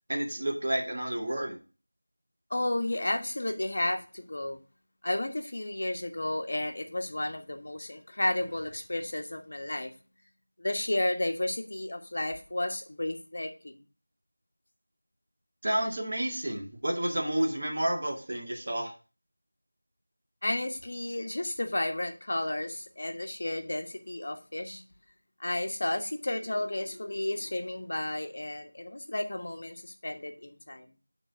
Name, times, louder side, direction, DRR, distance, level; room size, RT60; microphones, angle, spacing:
voice 1, 0.1-1.6 15.6-18.9, right 1 dB, 45° right, 0 dB, 2.2 m, -30 dB
voice 2, 2.5-4.6 5.0-9.9 10.6-13.8 20.4-24.8 25.4-30.9, left 1 dB, 45° left, 4 dB, 1.2 m, -32 dB
9.0 x 4.0 x 5.2 m, 0.34 s
figure-of-eight pair, 175°, 0 cm